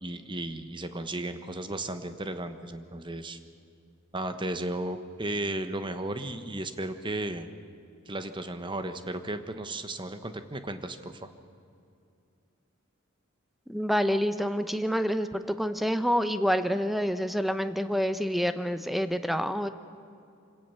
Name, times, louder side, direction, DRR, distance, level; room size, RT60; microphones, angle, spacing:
voice 1, 0.0-3.4 4.1-7.5 8.1-11.3, right 1 dB, 25° right, 9 dB, 1.2 m, -34 dB
voice 2, 13.7-19.7, equal, ahead, 10 dB, 0.8 m, -27 dB
26.0 x 17.5 x 7.0 m, 2.5 s
head